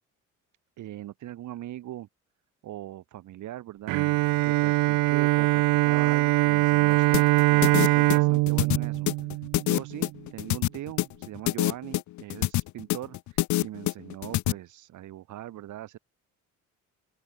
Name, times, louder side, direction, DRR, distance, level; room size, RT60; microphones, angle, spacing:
voice 1, 0.8-2.1 2.6-4.0 4.4-9.1 9.6-16.0, right 13 dB, 65° right, 1.7 m, -40 dB
Bowed string instrument, 3.9-10.1, right 23 dB, 80° right, 0.6 m, -22 dB
sound 1, 7.1-14.5, left 17 dB, 60° left, 0.5 m, -26 dB
open air
cardioid pair, 95°, 33 cm